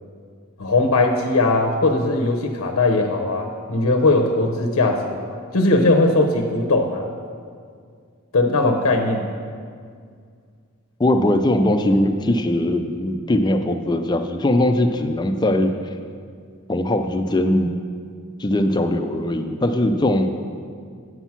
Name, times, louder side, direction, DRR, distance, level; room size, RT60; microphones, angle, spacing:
voice 1, 0.6-7.1 8.3-9.3, left 2 dB, 70° left, 1 dB, 0.7 m, -19 dB
voice 2, 11.0-15.7 16.7-17.7 18.4-20.3, left 1 dB, 20° left, 6 dB, 0.4 m, -20 dB
8.0 x 5.8 x 5.8 m, 2.1 s
head